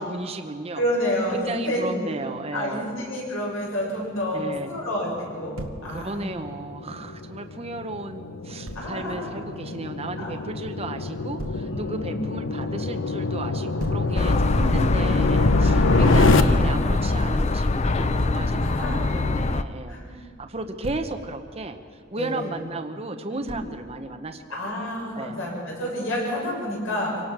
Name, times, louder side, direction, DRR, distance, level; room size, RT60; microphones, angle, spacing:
voice 1, 0.0-0.8 1.3-2.9 4.3-4.8 5.9-21.8 22.1-25.4, right 2 dB, 30° right, 6 dB, 0.9 m, -34 dB
voice 2, 0.8-2.2 2.5-6.3 8.7-9.3 10.2-10.5 11.5-12.2 14.0-14.5 18.6-19.3 19.9-20.2 22.1-22.5 23.3-23.7 24.5-27.2, equal, 80° left, -3 dB, 7.6 m, -29 dB
sound 1, 5.3-16.4, left 3 dB, 65° left, 0.9 m, -26 dB
Thump thud, 5.6-5.9 8.7-8.9 11.4-11.7 13.8-14.1 16.0-16.3 18.2-18.5 20.6-21.1 23.5-23.8, right 1 dB, 90° right, 1.5 m, -35 dB
sound 2, 14.2-19.6, left 2 dB, 35° left, 0.6 m, -22 dB
25.0 x 18.0 x 6.0 m, 2.3 s
head